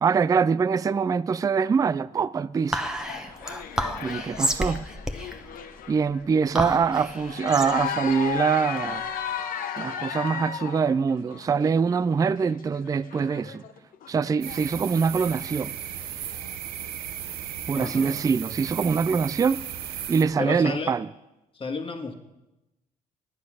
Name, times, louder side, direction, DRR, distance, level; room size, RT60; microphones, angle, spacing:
voice 1, 0.0-2.8 4.0-4.8 5.9-9.0 9.8-13.6 14.1-15.7 17.7-19.6 20.1-21.1, right 5 dB, 25° right, 0.3 m, -24 dB
Whispering, 2.7-9.4, equal, 5° right, 1.1 m, -31 dB
sound 1, 2.8-6.3 6.6-15.9 16.3-16.4, left 8 dB, 65° left, 1.0 m, -35 dB
sound 2, 14.4-20.2, right 10 dB, 85° right, 0.8 m, -35 dB
voice 2, 17.7-18.3 20.4-21.0 21.5-22.1, left 4 dB, 35° left, 1.5 m, -32 dB
9.6 x 9.5 x 6.1 m
supercardioid pair, 70°, 16 cm